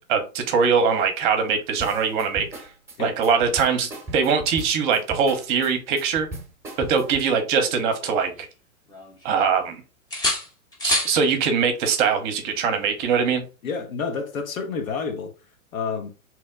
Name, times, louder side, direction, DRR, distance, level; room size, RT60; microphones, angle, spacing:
voice 1, 0.1-2.5 3.0-6.3 6.8-8.5 9.2-9.8 10.8-13.4, right 6 dB, 35° right, 0.7 m, -22 dB
sound 1, 1.8-7.3, right 1 dB, 5° right, 0.9 m, -37 dB
sound 2, 7.0-8.5 8.9-9.7 10.1-11.2 13.0-13.2, left 1 dB, 10° left, 0.5 m, -29 dB
voice 2, 13.6-15.3 15.7-16.1, left 5 dB, 70° left, 1.0 m, -29 dB
2.9 x 2.1 x 3.6 m
figure-of-eight pair, 115°, 43 cm